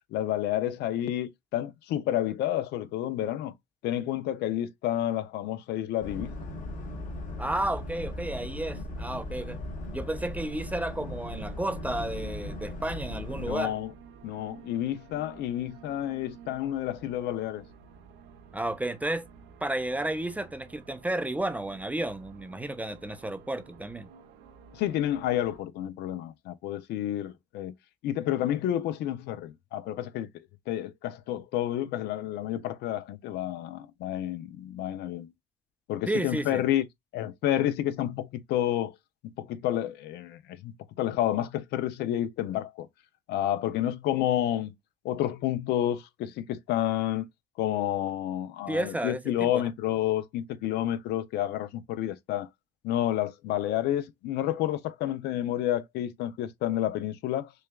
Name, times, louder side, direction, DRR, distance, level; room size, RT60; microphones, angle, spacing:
voice 1, 0.1-3.5 3.8-6.3 13.4-13.9 14.2-17.7 24.7-27.7 28.0-30.3 30.7-35.3 35.9-36.9 37.1-39.0 39.4-42.9 43.3-44.7 45.0-47.3 47.6-52.5 52.8-57.5, left 12 dB, 80° left, 0.5 m, -30 dB
Boat Water vehicle, 6.0-13.5, left 1 dB, 50° left, 1.2 m, -38 dB
voice 2, 7.4-9.6 9.9-13.7 18.5-19.3 19.6-24.1 36.1-36.6 48.7-49.6, right 1 dB, 10° right, 0.5 m, -32 dB
sound 1, 10.3-25.6, right 6 dB, 90° right, 0.7 m, -52 dB
6.3 x 2.3 x 2.2 m
cardioid pair, 110°, 17 cm